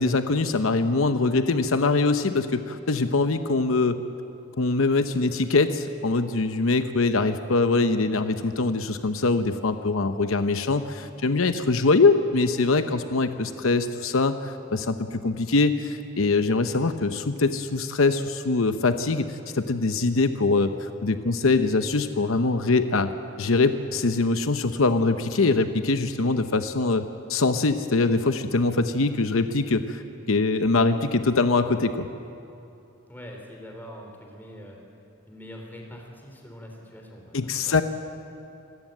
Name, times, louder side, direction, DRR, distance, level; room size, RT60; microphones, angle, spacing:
voice 1, 0.0-4.0 4.6-23.1 23.4-27.0 27.3-30.0 30.3-32.1 37.3-37.8, left 3 dB, 80° left, 9 dB, 0.8 m, -23 dB
voice 2, 33.1-34.8 35.3-37.8, equal, 10° left, 1 dB, 3.6 m, -43 dB
26.5 x 15.0 x 9.1 m, 2.8 s
head